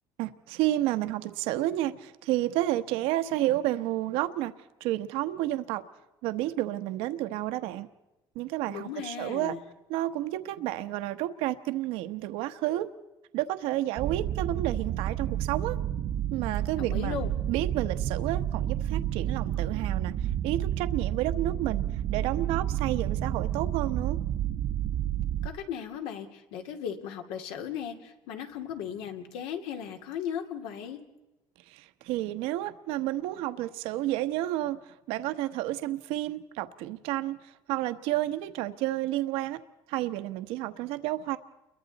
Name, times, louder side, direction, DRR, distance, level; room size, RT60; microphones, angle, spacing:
voice 1, 0.2-4.5 4.8-5.8 6.2-7.9 8.3-9.6 9.9-12.9 13.3-15.8 16.3-17.2 17.5-20.1 20.4-21.8 22.1-24.2 31.7-34.8 35.1-37.4 37.7-39.6 39.9-41.4, right 15 dB, 85° right, 10 dB, 1.1 m, -30 dB
voice 2, 8.7-9.6 16.8-17.3 25.4-31.0, left 8 dB, 85° left, 5 dB, 2.5 m, -36 dB
sound 1, 14.0-25.5, right 11 dB, 55° right, 1.0 m, -30 dB
29.5 x 22.5 x 4.1 m, 1.0 s
cardioid pair, 145°, 9 cm